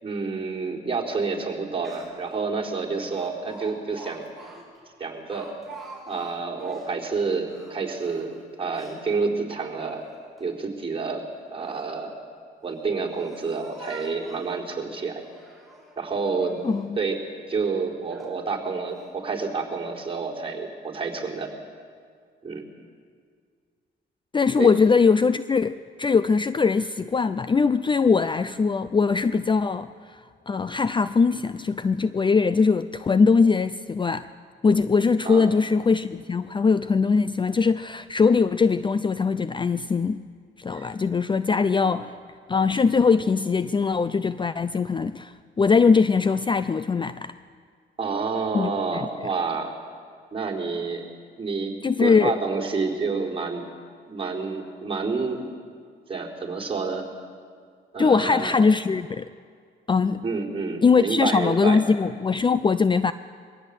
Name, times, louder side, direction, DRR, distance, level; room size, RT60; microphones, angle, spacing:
voice 1, 0.0-4.3 5.0-5.5 6.1-10.0 10.4-11.2 11.5-12.1 12.6-15.2 16.0-17.2 17.5-21.5 22.4-22.6 24.6-24.7 35.2-35.5 40.7-40.9 41.8-42.0 48.0-49.7 50.3-51.0 51.4-53.7 54.1-55.5 56.1-57.1 57.9-58.6 60.2-61.8, right 4 dB, 30° right, -1 dB, 4.1 m, -29 dB
Speech, 1.5-1.6 1.8-2.3 3.1-7.0 7.4-9.1 9.6-10.4 11.3-11.9 12.6-14.6 15.2-16.0 16.4-16.9 17.5-17.6 18.1-18.4 18.9-19.1, right 2 dB, ahead, 5.4 m, -47 dB
voice 2, 16.6-17.0 24.3-30.2 30.5-34.3 34.6-40.2 40.6-42.1 42.5-47.3 48.5-49.1 51.8-52.3 58.0-59.3 59.9-60.2 60.8-63.1, left 5 dB, 25° left, 14 dB, 0.5 m, -21 dB
22.5 x 17.0 x 8.3 m, 2.1 s
cardioid pair, 90°, 20 cm